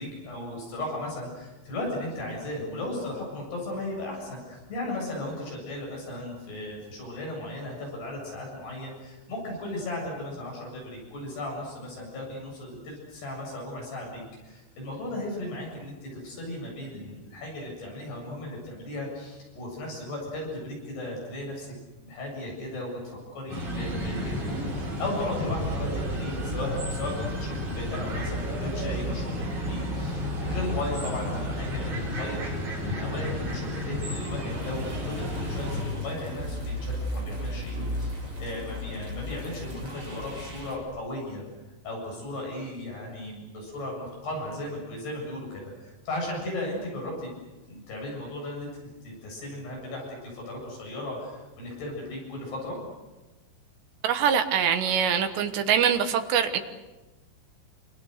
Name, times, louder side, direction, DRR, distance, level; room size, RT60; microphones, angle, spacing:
voice 1, 0.0-21.7 22.0-41.4 41.8-47.3 47.7-48.7 49.0-52.8, left 1 dB, 50° left, -1 dB, 9.7 m, -36 dB
sound 1, 23.5-35.8, equal, 45° right, 9.4 m, -31 dB
sound 2, 34.5-40.7, left 1 dB, 20° right, 7.3 m, -35 dB
voice 2, 54.0-56.6, right 8 dB, 70° right, 8 dB, 3.1 m, -24 dB
28.5 x 26.5 x 6.7 m, 1.1 s
omnidirectional pair, 5.9 m